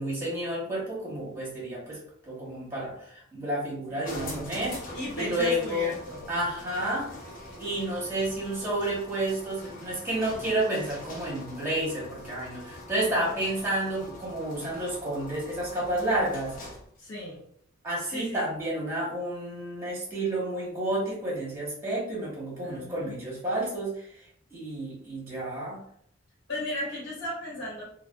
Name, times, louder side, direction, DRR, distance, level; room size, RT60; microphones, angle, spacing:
voice 1, 0.0-2.0 2.2-5.9 6.3-7.1 7.6-16.5 17.8-24.1 24.5-25.8, right 1 dB, 15° right, -5 dB, 1.2 m, -30 dB
voice 2, 3.9-4.4 4.9-6.3 13.0-13.4 17.0-17.4 18.1-18.5 22.6-23.2 26.5-27.8, equal, 60° left, -5 dB, 1.3 m, -36 dB
sound 1, 4.0-17.0, left 1 dB, 45° left, 0.7 m, -44 dB
3.2 x 2.2 x 2.3 m, 0.66 s
head